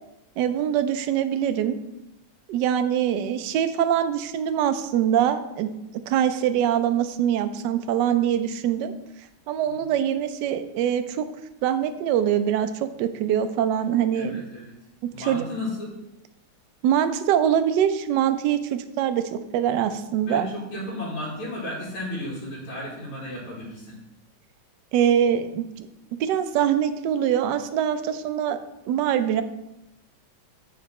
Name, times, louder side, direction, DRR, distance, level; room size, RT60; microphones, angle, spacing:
voice 1, 0.4-1.8 2.5-5.7 6.1-8.9 9.5-11.2 11.6-14.4 15.3-15.4 16.8-20.5 24.9-25.9 26.2-28.6 28.9-29.4, right 9 dB, 75° right, 9 dB, 1.0 m, -23 dB
voice 2, 14.1-14.7 15.1-15.9 20.3-24.0, left 1 dB, 90° left, -7 dB, 2.7 m, -34 dB
6.9 x 5.1 x 4.2 m, 0.90 s
omnidirectional pair, 2.3 m